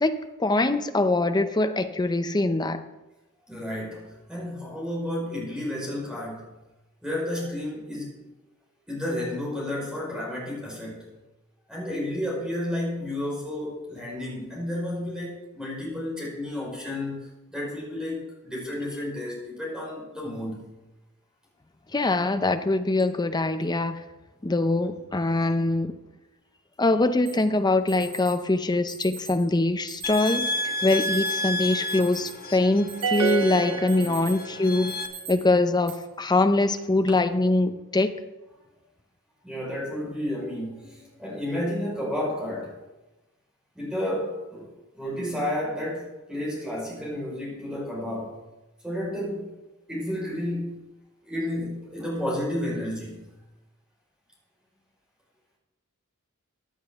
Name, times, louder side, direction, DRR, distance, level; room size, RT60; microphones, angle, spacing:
voice 1, 0.0-2.8 21.9-24.0 24.4-25.9 26.8-34.9 35.3-38.1, left 2 dB, 20° left, 9 dB, 0.6 m, -23 dB
voice 2, 3.5-6.6 7.0-8.2 8.9-11.1 11.7-18.2 18.4-20.7 33.2-33.3 33.7-34.0 35.2-35.3 39.4-42.7 43.7-44.7 45.0-48.4 48.8-49.5 49.9-50.8 51.2-53.3, left 1 dB, 5° right, -5 dB, 4.7 m, -31 dB
Alarm, 27.3-27.4 27.9-28.3 28.9-29.4 29.9-30.4 30.9-31.3 31.7-32.5 32.9-33.4 33.7-34.4 34.9-35.3 35.9-36.0 36.7-37.1, right 4 dB, 55° right, 3.2 m, -41 dB
sound 1, 30.0-35.1, left 1 dB, 40° left, 1.1 m, -31 dB
sound 2, 33.0-34.7, right 7 dB, 75° right, 0.8 m, -28 dB
15.5 x 9.8 x 3.6 m, 1.0 s
head